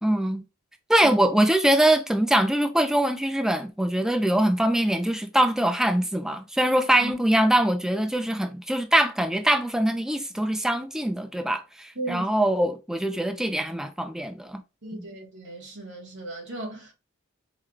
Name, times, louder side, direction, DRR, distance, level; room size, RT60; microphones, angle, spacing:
voice 1, 0.0-0.4 0.9-14.6 14.9-15.1, right 1 dB, ahead, 0.4 m, -23 dB
voice 2, 14.8-16.9, right 2 dB, 55° right, 1.7 m, -36 dB
4.8 x 2.2 x 3.3 m
head